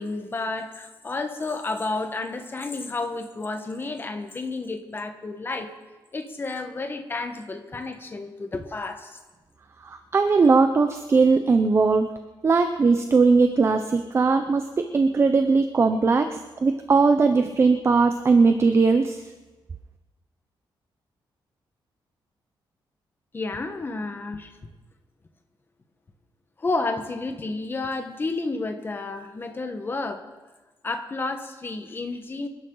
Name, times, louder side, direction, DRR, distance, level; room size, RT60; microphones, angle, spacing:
voice 1, 0.0-5.7 6.1-9.2 23.3-24.5 26.6-30.2 30.8-32.5, left 3 dB, 25° left, 6 dB, 1.3 m, -31 dB
voice 2, 9.8-12.1 12.4-19.2, right 4 dB, 30° right, 7 dB, 0.7 m, -19 dB
26.5 x 11.5 x 4.0 m, 1.2 s
wide cardioid pair, 150°, 9 cm